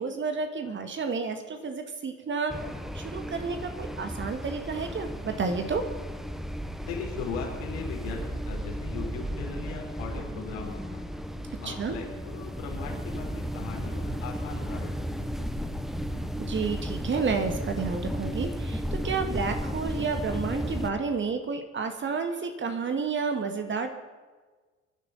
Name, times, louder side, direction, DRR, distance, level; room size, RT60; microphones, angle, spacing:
voice 1, 0.0-2.5 2.9-5.8 11.6-12.0 16.4-23.9, right 5 dB, 30° right, 6 dB, 2.0 m, -31 dB
sound 1, 2.5-20.9, equal, ahead, 1.0 m, -34 dB
voice 2, 6.8-11.1 11.6-15.8, left 5 dB, 60° left, 0 dB, 4.4 m, -39 dB
24.5 x 12.0 x 4.3 m, 1.4 s
figure-of-eight pair, 70°, 39 cm